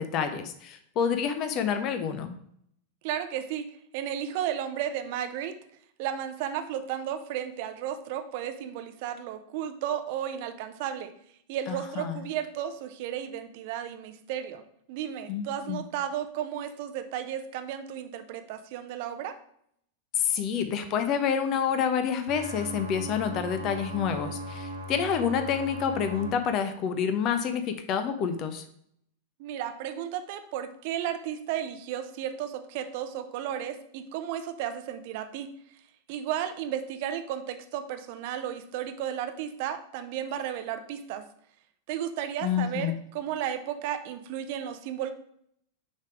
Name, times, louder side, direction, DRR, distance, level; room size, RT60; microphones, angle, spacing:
voice 1, 0.0-2.3 11.7-12.2 15.3-15.8 20.1-28.6 42.4-43.0, left 7 dB, 35° left, 9 dB, 0.6 m, -28 dB
voice 2, 3.0-3.7 3.9-5.5 6.0-11.1 11.5-14.6 14.9-19.4 29.4-35.5 36.1-41.2 41.9-45.1, right 10 dB, 50° right, 9 dB, 0.6 m, -33 dB
sound 1, 22.3-26.3, equal, 65° right, 1.0 m, -38 dB
6.5 x 3.5 x 4.7 m, 0.69 s
figure-of-eight pair, 90°, 0 cm